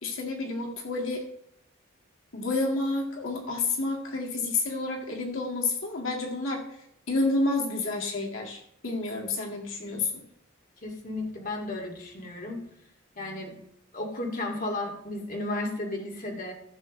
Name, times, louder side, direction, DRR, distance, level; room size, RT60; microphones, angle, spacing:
voice 1, 0.0-1.2 2.3-6.6 7.1-10.2, left 3 dB, 85° left, 0 dB, 2.0 m, -29 dB
voice 2, 10.8-12.6 13.2-13.6 13.9-16.5, left 2 dB, 45° left, 0 dB, 2.4 m, -34 dB
15.5 x 7.3 x 3.2 m, 0.78 s
head